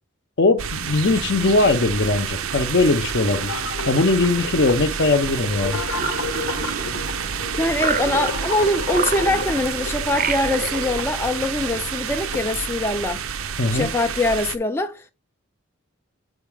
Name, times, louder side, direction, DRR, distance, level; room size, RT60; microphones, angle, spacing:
voice 1, 0.4-3.6 3.9-5.8 13.6-13.9, left 3 dB, 55° left, 0.6 m, -20 dB
sound 1, 0.6-14.6, right 7 dB, 85° right, 0.6 m, -29 dB
sound 2, 3.0-12.6, left 4 dB, 90° left, 0.8 m, -33 dB
sound 3, 5.8-7.3 7.7-8.6 8.9-9.7 10.1-11.0, right 6 dB, 40° right, 0.5 m, -29 dB
voice 2, 7.5-13.2 13.7-15.1, left 2 dB, 10° left, 0.3 m, -23 dB
8.0 x 4.8 x 3.4 m
head